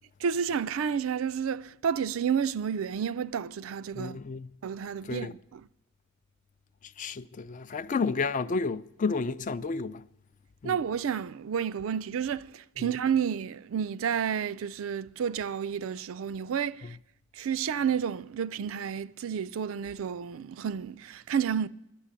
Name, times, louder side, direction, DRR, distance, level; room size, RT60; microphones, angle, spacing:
voice 1, 0.2-4.2 4.6-5.6 10.6-17.0 17.4-21.7, right 7 dB, 85° right, 0.4 m, -30 dB
voice 2, 4.0-4.5 5.0-5.3 7.0-10.0 10.6-10.8 12.8-12.9 16.8-16.9, left 4 dB, 40° left, 0.4 m, -31 dB
11.5 x 8.1 x 9.7 m
head